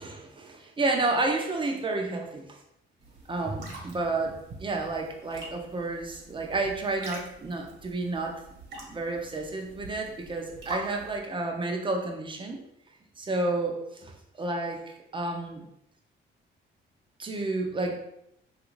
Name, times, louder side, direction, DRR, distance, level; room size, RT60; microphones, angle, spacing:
voice 1, 0.0-2.6 3.3-8.4 8.8-12.6 13.2-15.7 17.2-18.0, right 2 dB, 25° right, 2 dB, 0.6 m, -31 dB
sound 1, 3.0-11.2, right 2 dB, 60° right, 1.2 m, -45 dB
2.9 x 2.5 x 3.1 m, 0.80 s
cardioid pair, 90°, 20 cm